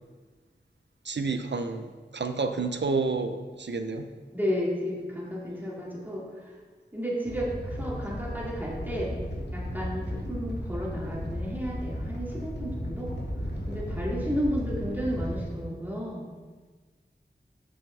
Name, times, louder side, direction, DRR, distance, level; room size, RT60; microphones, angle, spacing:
voice 1, 1.0-4.1, right 4 dB, 75° right, 8 dB, 0.6 m, -30 dB
voice 2, 4.3-6.5 6.9-9.2 9.5-13.1 13.7-16.3, equal, 10° right, -5 dB, 2.3 m, -32 dB
Animal, 7.2-15.4, equal, 70° left, 1.5 m, -35 dB
8.7 x 6.9 x 3.3 m, 1.4 s
wide cardioid pair, 45°, 18 cm